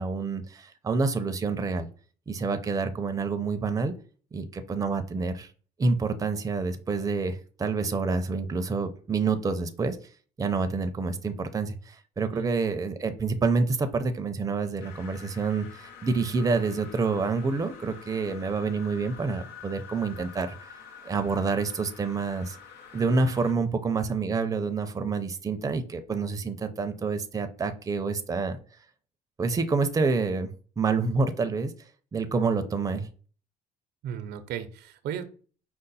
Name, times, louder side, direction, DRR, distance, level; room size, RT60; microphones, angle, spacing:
voice 1, 0.0-1.9 2.3-3.9 4.3-5.5 5.8-10.0 10.4-20.6 21.0-22.6 22.9-28.6 29.4-30.5 30.8-31.7 32.1-33.1, right 4 dB, 20° right, 8 dB, 0.5 m, -28 dB
sound 1, 14.8-23.5, left 7 dB, 75° left, 0.9 m, -47 dB
voice 2, 34.0-35.3, right 9 dB, 80° right, 10 dB, 0.6 m, -35 dB
5.2 x 2.1 x 4.0 m, 0.39 s
cardioid pair, 110°, 17 cm